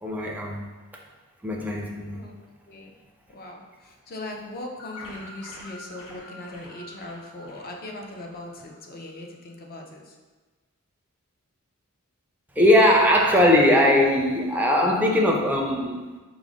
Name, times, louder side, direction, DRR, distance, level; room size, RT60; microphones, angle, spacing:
voice 1, 0.0-0.7 1.4-2.2 12.6-16.1, left 1 dB, 10° right, -1 dB, 0.4 m, -20 dB
voice 2, 2.1-2.9 3.3-10.2, left 1 dB, 45° left, 1 dB, 0.5 m, -39 dB
sound 1, 4.8-9.1, left 1 dB, 65° left, 1.1 m, -46 dB
4.8 x 2.1 x 3.6 m, 1.3 s
head